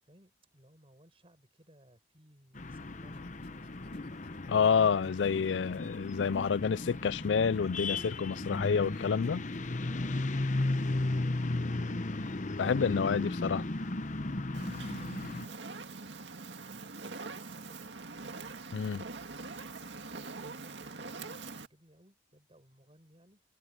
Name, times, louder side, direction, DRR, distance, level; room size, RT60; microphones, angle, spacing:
voice 1, 0.0-3.7 9.8-12.0 13.2-13.4 16.7-18.4 20.4-23.4, right 1 dB, 30° right, 7.6 m, -62 dB
sound 1, 2.6-15.5, left 2 dB, 45° left, 1.0 m, -35 dB
sound 2, 3.1-9.7, left 2 dB, 70° left, 1.9 m, -52 dB
voice 2, 4.5-9.5 12.6-13.6 18.7-19.0, left 6 dB, 90° left, 0.4 m, -28 dB
Fire, 14.5-21.7, right 3 dB, 85° right, 2.0 m, -43 dB
head